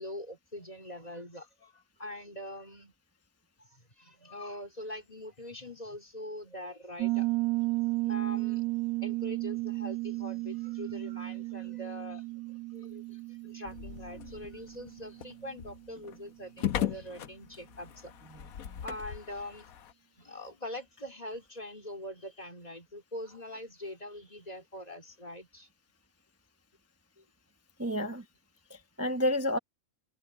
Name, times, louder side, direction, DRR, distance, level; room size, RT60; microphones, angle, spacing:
voice 1, 0.0-2.9 3.6-7.3 8.0-8.6 9.0-12.2 12.7-18.1 18.8-19.7 20.2-25.7 27.2-27.3, left 1 dB, 25° left, 3.0 m, -43 dB
Piano, 7.0-15.5, right 22 dB, 90° right, 1.5 m, -34 dB
sound 1, 13.6-19.9, left 11 dB, 80° left, 1.3 m, -38 dB
voice 2, 27.8-28.2 28.7-29.6, left 1 dB, 15° right, 0.7 m, -30 dB
omnidirectional pair, 1.5 m